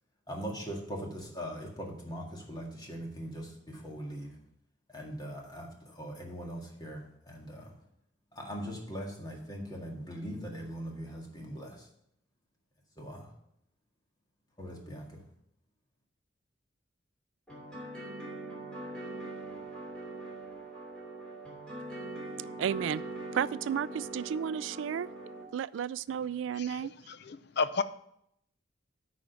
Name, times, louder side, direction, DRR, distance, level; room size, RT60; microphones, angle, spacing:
voice 1, 0.3-4.4 4.9-7.7 8.3-11.9 13.0-13.3 14.6-15.2, equal, 20° left, -1 dB, 1.9 m, -41 dB
sound 1, 17.5-25.4, right 2 dB, 5° left, 2.7 m, -42 dB
voice 2, 22.6-23.0 23.3-25.1 25.5-26.9, right 8 dB, 80° right, 20 dB, 0.3 m, -32 dB
voice 3, 27.1-27.8, left 4 dB, 60° left, 12 dB, 0.6 m, -32 dB
8.9 x 5.0 x 7.0 m, 0.75 s
head